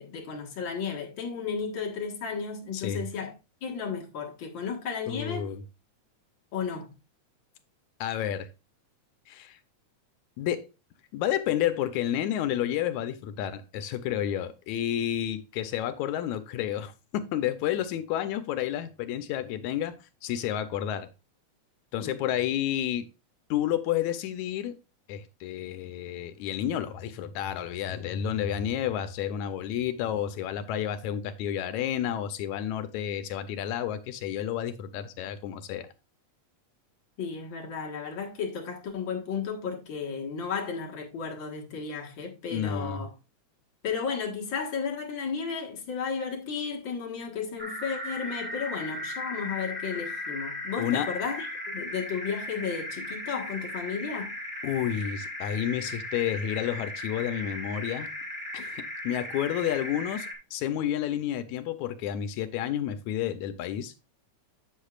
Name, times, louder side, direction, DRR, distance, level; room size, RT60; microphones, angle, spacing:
voice 1, 0.0-3.3 3.6-5.4 6.5-6.9 22.0-22.2 37.2-43.1 43.8-54.3, left 6 dB, 45° left, 2.0 m, -33 dB
voice 2, 2.7-3.0 5.1-5.6 8.0-8.5 9.3-9.6 10.4-10.7 11.1-19.9 20.2-21.1 21.9-23.1 23.5-24.7 25.1-35.9 42.5-43.0 50.8-51.1 54.6-58.1 58.5-63.9, left 10 dB, 80° left, 2.0 m, -30 dB
sound 1, 47.6-60.3, left 1 dB, 5° right, 1.4 m, -37 dB
8.5 x 8.0 x 2.4 m
omnidirectional pair, 3.4 m